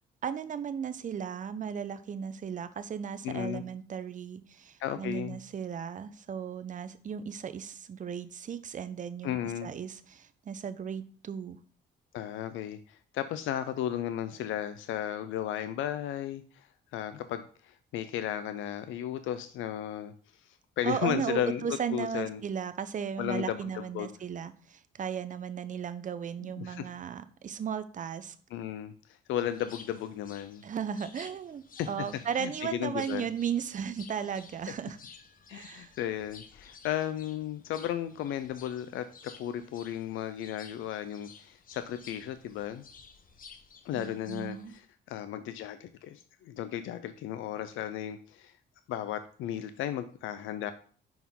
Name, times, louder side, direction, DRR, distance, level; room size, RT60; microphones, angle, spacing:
voice 1, 0.2-11.6 20.8-28.3 30.6-35.0 35.5-35.9 43.9-44.7, right 7 dB, 40° right, 11 dB, 0.6 m, -36 dB
voice 2, 3.2-3.6 4.8-5.4 9.2-9.7 12.1-16.7 16.9-20.1 20.4-22.4 23.2-24.1 26.6-26.9 28.5-30.6 31.8-31.9 32.4-33.3 35.5-42.8 43.8-48.5 48.9-50.7, left 11 dB, 80° left, 11 dB, 0.5 m, -35 dB
sound 1, 29.3-44.8, left 5 dB, 45° left, 0.8 m, -54 dB
5.5 x 4.7 x 3.6 m, 0.43 s
cardioid pair, 90°, 20 cm